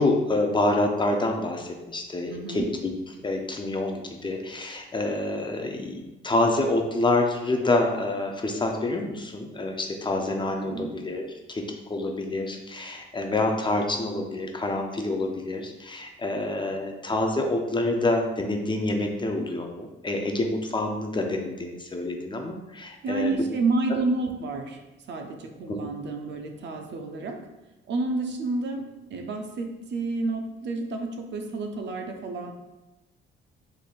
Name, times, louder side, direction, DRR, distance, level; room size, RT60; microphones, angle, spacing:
voice 1, 0.0-2.9 3.2-23.3 25.7-25.8, left 2 dB, 25° left, 3 dB, 0.5 m, -27 dB
voice 2, 2.3-2.6 10.6-11.0 23.0-24.8 25.1-27.4 27.9-28.8 29.1-32.5, right 3 dB, 65° right, 3 dB, 0.6 m, -29 dB
3.8 x 3.2 x 2.4 m, 1.0 s
cardioid pair, 90°, 20 cm